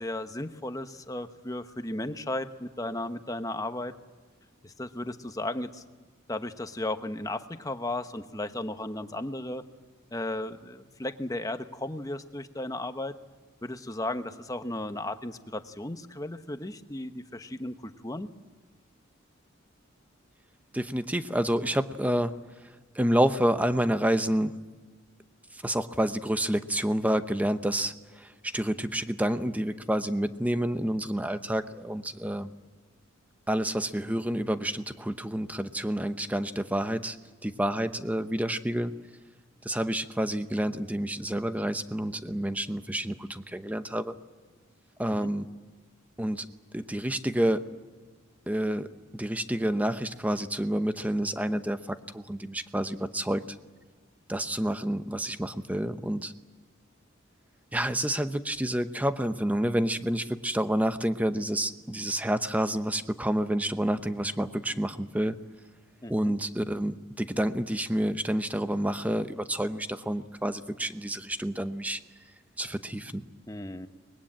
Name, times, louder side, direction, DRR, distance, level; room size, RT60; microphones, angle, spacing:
voice 1, 0.0-3.9 4.6-5.8 6.3-9.6 10.1-13.1 13.6-18.3 45.1-45.3 66.0-66.3 73.5-73.9, left 1 dB, 15° left, 9 dB, 1.0 m, -35 dB
voice 2, 20.7-22.3 22.9-24.5 25.5-32.5 33.5-37.2 37.4-38.9 39.6-44.1 45.0-45.5 46.2-46.5 46.7-47.7 48.5-48.9 49.1-53.4 54.3-56.3 57.7-65.4 66.1-72.0 72.6-73.2, right 1 dB, 5° right, 10 dB, 0.8 m, -29 dB
23.5 x 20.5 x 8.8 m, 1.4 s
head